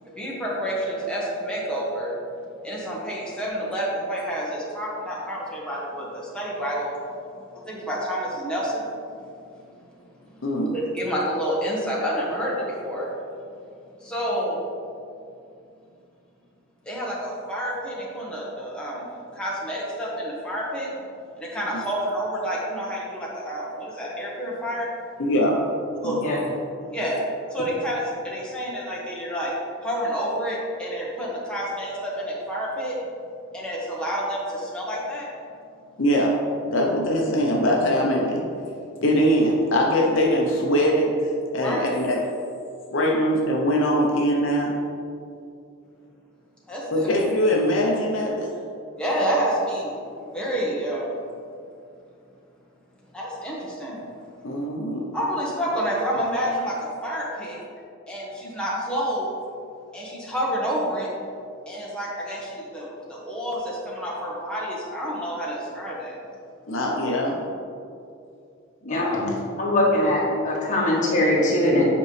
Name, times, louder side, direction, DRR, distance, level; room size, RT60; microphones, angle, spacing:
voice 1, 0.0-2.1 2.6-6.9 7.5-8.9 9.2-9.3 9.7-9.8 10.2-10.4 10.7-13.1 14.0-14.6 16.8-20.9 21.4-24.9 26.0-26.4 26.9-27.2 27.5-29.5 29.8-33.0 33.5-35.3 41.6-42.0 46.7-47.1 49.0-51.2 53.1-54.0 55.1-57.6 58.1-59.4 59.9-61.1 61.7-66.2 69.0-69.1, equal, 5° left, -6 dB, 1.2 m, -29 dB
voice 2, 10.4-10.7 25.2-25.6 26.0-26.2 36.0-38.5 39.0-42.3 42.9-44.8 46.9-48.6 54.4-55.1 66.7-67.4, equal, 65° left, -1 dB, 0.7 m, -22 dB
voice 3, 68.8-71.8, left 1 dB, 35° left, -4 dB, 1.5 m, -22 dB
8.3 x 5.2 x 3.2 m, 2.5 s
head